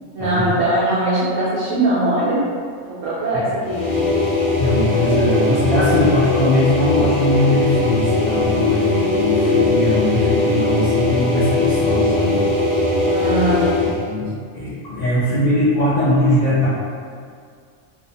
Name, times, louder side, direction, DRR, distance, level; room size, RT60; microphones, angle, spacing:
voice 1, 0.1-2.5 2.9-3.8 13.0-13.7, right 1 dB, 75° right, -9 dB, 0.9 m, -20 dB
sound 1, 3.6-14.0, left 2 dB, 55° left, 1.2 m, -19 dB
voice 2, 4.6-12.4 14.1-14.3 14.5-16.7, left 1 dB, 80° left, -11 dB, 0.3 m, -20 dB
2.7 x 2.0 x 2.6 m, 2.1 s
omnidirectional pair, 1.4 m